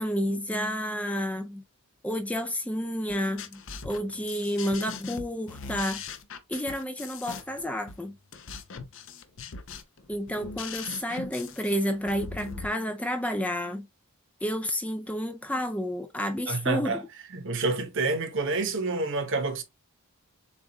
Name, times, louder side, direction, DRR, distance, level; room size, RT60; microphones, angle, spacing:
voice 1, 0.0-1.6 2.0-6.0 6.5-8.2 10.1-13.9 14.4-17.0, equal, 5° left, 0.4 m, -30 dB
sound 1, 3.1-12.7, left 5 dB, 60° left, 0.7 m, -40 dB
voice 2, 16.5-17.0 17.3-19.6, right 3 dB, 60° right, 1.1 m, -28 dB
7.2 x 2.5 x 2.9 m
head